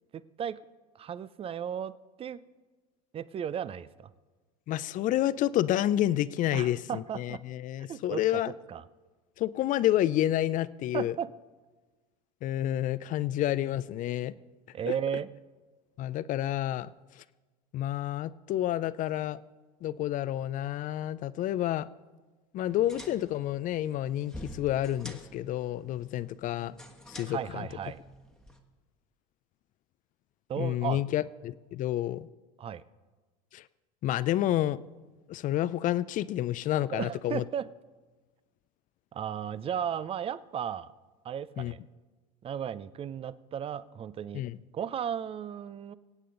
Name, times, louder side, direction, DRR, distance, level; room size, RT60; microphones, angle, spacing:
voice 1, 0.1-0.6 1.0-1.9 2.2-2.4 3.1-4.1 6.5-7.4 7.9-8.4 8.7-8.8 10.9-11.3 14.7-15.3 27.3-28.0 30.5-31.0 32.6-32.8 36.9-37.7 39.1-40.9 41.2-41.8 42.4-44.4 44.7-45.9, right 8 dB, 30° right, 17 dB, 0.5 m, -35 dB
voice 2, 4.7-8.5 9.4-11.1 12.4-14.3 14.9-15.0 16.0-16.9 17.7-19.4 19.8-21.9 22.5-26.7 27.1-27.7 30.6-32.3 33.5-33.6 34.0-34.8 35.3-37.4 41.6-41.7 44.3-44.6, left 13 dB, 40° left, 18 dB, 0.5 m, -29 dB
sound 1, 22.6-28.6, equal, 5° left, 1.3 m, -48 dB
24.0 x 8.5 x 3.9 m, 1.3 s
hypercardioid pair, 95°, 20 cm